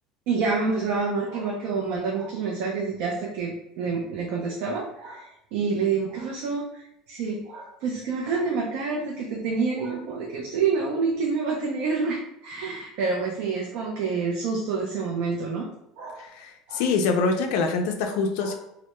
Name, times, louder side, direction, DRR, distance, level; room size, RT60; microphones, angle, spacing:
voice 1, 0.3-15.6 16.0-16.3 16.7-16.8 18.4-18.5, right 4 dB, 60° right, -2 dB, 0.4 m, -28 dB
voice 2, 16.2-18.5, left 4 dB, 65° left, 5 dB, 0.3 m, -25 dB
2.1 x 2.0 x 2.8 m, 0.80 s
cardioid pair, 165°, 0 cm